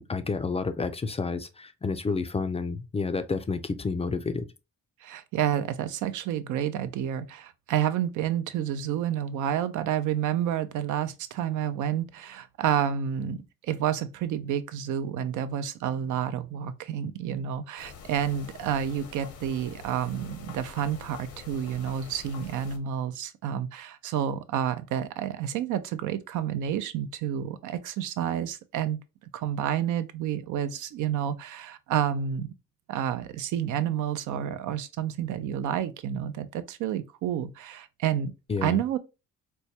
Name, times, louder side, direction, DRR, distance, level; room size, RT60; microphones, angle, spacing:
voice 1, 0.0-4.5 38.5-38.8, left 4 dB, 20° left, 0.3 m, -30 dB
voice 2, 5.0-29.0 29.3-32.5 32.9-38.3 38.6-39.0, right 9 dB, 80° right, 0.5 m, -29 dB
sound 1, 17.8-22.8, left 5 dB, 75° left, 0.8 m, -46 dB
4.4 x 2.1 x 2.8 m
cardioid pair, 90°, 30 cm